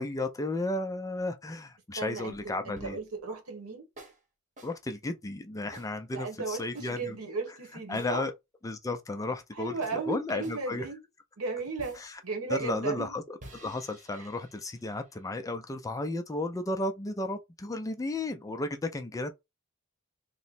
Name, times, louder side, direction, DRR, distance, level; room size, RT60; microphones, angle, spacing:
voice 1, 0.0-3.0 4.6-7.2 7.9-8.3 8.6-10.9 12.0-12.2 12.5-19.3, left 2 dB, 15° left, 0.4 m, -34 dB
voice 2, 1.9-3.8 6.1-8.2 9.6-11.0 11.4-13.1 14.1-14.3, right 4 dB, 85° right, 1.2 m, -35 dB
sound 1, 2.3-3.2 4.0-4.2 4.6-4.8 5.7-5.9 6.8-7.1 7.9-8.2 9.8-10.0 10.4-10.7 11.8-12.1 13.4-15.5, right 1 dB, 35° right, 1.0 m, -52 dB
3.0 x 2.1 x 4.0 m
head